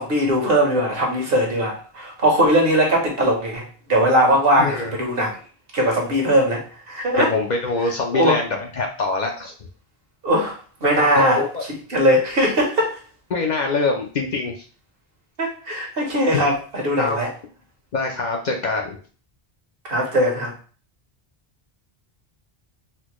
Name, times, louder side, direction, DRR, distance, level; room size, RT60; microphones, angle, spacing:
voice 1, 0.0-5.4 5.7-7.3 8.1-8.4 10.2-13.0 15.4-17.3 19.8-20.5, equal, 65° right, 0 dB, 1.2 m, -20 dB
voice 2, 4.6-4.9 7.2-9.5 10.8-11.6 13.3-14.6 17.0-17.2 17.9-19.0, left 3 dB, 55° left, 2 dB, 0.6 m, -24 dB
4.2 x 2.2 x 3.0 m, 0.39 s
omnidirectional pair, 1.0 m